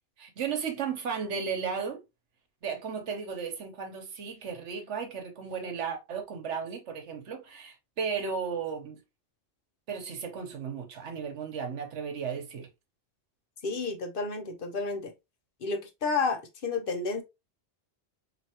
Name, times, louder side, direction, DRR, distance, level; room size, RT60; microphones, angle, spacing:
voice 1, 0.2-2.0 2.6-9.0 9.9-12.7, right 6 dB, 75° right, 1.2 m, -35 dB
voice 2, 13.6-15.1 15.6-17.2, left 4 dB, 55° left, 0.8 m, -31 dB
4.3 x 2.9 x 2.8 m
omnidirectional pair, 1.2 m